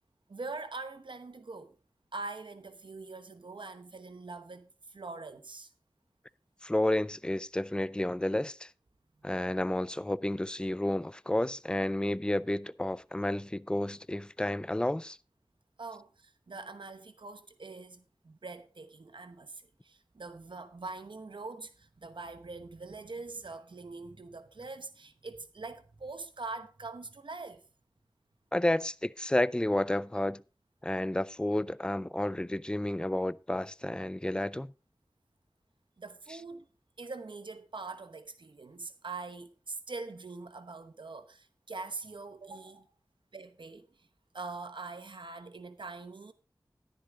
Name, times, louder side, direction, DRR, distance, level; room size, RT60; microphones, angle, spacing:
voice 1, 0.3-1.8 2.1-5.7 15.8-27.6 36.0-36.7 37.0-42.9 43.3-44.1 44.3-46.3, right 3 dB, 75° right, 1.0 m, -43 dB
voice 2, 6.6-8.7 9.2-15.2 28.5-30.4 30.8-34.7, left 1 dB, 10° left, 0.4 m, -31 dB
11.0 x 10.5 x 3.6 m
wide cardioid pair, 45°, 8 cm